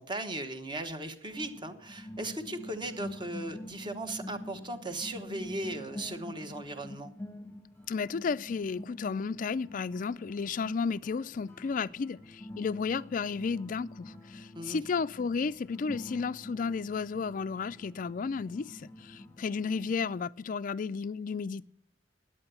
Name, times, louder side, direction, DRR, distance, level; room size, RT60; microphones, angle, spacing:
voice 1, 0.0-7.1 14.5-14.8, right 1 dB, 25° right, 1.2 m, -37 dB
sound 1, 1.3-20.2, left 1 dB, 10° left, 1.2 m, -46 dB
voice 2, 7.9-21.7, left 5 dB, 45° left, 0.4 m, -33 dB
11.0 x 8.8 x 6.9 m
head